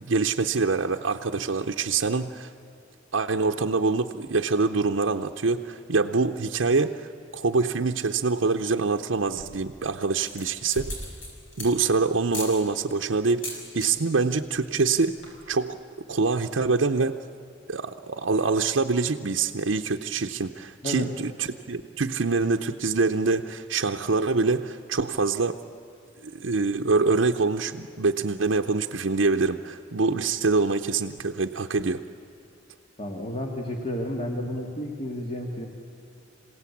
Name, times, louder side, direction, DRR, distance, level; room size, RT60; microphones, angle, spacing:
voice 1, 0.0-2.5 3.1-10.9 11.6-15.1 15.5-15.8 16.1-17.2 17.7-25.6 26.2-32.0, right 4 dB, 85° right, 3 dB, 0.7 m, -25 dB
sound 1, 9.4-9.7 10.1-11.9 12.3-12.6 13.3-13.9 14.2-14.5 14.8-14.9 15.1-15.5, left 1 dB, 80° left, 5.7 m, -38 dB
voice 2, 33.0-35.7, left 1 dB, 35° left, 1 dB, 2.0 m, -31 dB
27.5 x 17.0 x 8.5 m, 2.8 s
head